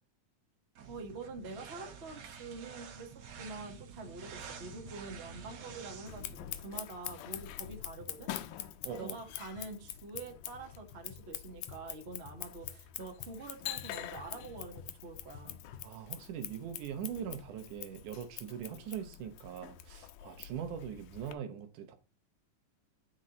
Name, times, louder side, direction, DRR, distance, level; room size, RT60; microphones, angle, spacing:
sound 1, 0.8-6.3, right 7 dB, 60° right, 2.4 m, -49 dB
voice 1, 0.9-8.3 9.0-15.6, right 3 dB, 30° right, 1.2 m, -46 dB
sound 2, 4.3-16.0, left 6 dB, 70° left, 1.8 m, -56 dB
Scissors, 6.1-21.3, left 13 dB, 85° left, 2.3 m, -45 dB
voice 2, 8.8-9.2 15.8-22.0, right 8 dB, 75° right, 2.5 m, -41 dB
8.9 x 4.3 x 3.8 m
omnidirectional pair, 3.7 m